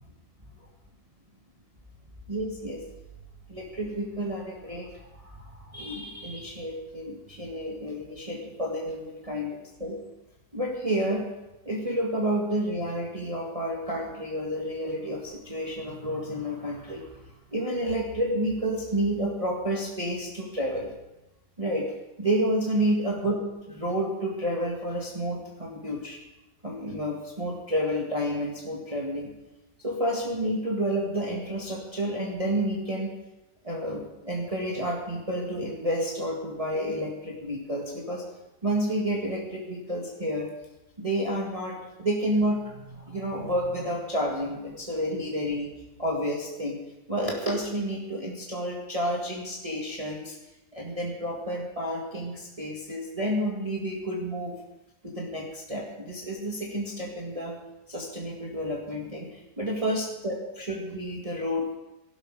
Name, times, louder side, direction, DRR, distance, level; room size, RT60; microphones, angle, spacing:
voice 1, 2.3-2.8 3.5-10.0 10.5-11.3 11.7-17.2 17.5-20.9 21.6-21.9 22.2-23.4 23.7-26.2 26.6-29.3 29.8-33.1 33.6-38.2 38.6-40.5 41.0-45.7 46.0-46.8 47.1-50.4 50.7-54.6 55.0-57.6 57.9-61.7, equal, 20° right, -2 dB, 2.0 m, -30 dB
17.5 x 12.5 x 4.9 m, 0.97 s
omnidirectional pair, 1.9 m